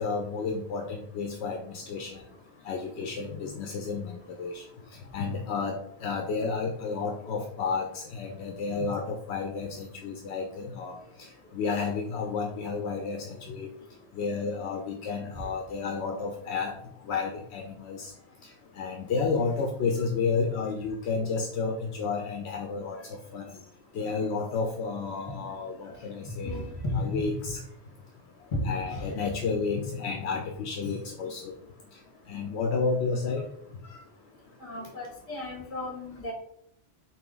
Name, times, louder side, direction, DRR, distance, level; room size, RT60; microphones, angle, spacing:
voice 1, 0.0-2.2 2.7-4.6 5.1-11.0 11.5-13.7 14.2-16.7 17.1-18.1 18.8-23.5 23.9-26.6 26.9-27.6 28.6-31.5 32.3-33.4, left 4 dB, 75° left, 2 dB, 0.8 m, -31 dB
voice 2, 25.3-25.6 26.2-26.3 26.8-27.5 28.5-28.7 34.6-36.3, left 2 dB, 45° left, -1 dB, 1.4 m, -34 dB
3.9 x 2.9 x 3.8 m, 0.71 s
omnidirectional pair, 1.1 m